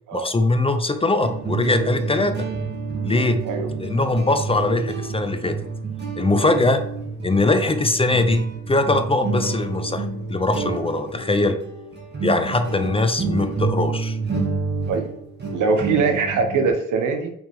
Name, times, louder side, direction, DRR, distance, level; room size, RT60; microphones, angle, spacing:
voice 1, 0.1-2.4 3.0-3.4 3.8-5.6 6.2-6.8 7.2-11.6 12.2-14.2, left 2 dB, 20° left, 8 dB, 0.7 m, -21 dB
sound 1, 1.2-16.7, right 4 dB, 35° right, 2.3 m, -29 dB
voice 2, 15.5-17.3, right 4 dB, 80° right, 5 dB, 1.2 m, -22 dB
6.0 x 5.3 x 3.6 m, 0.72 s
cardioid pair, 90°, 30 cm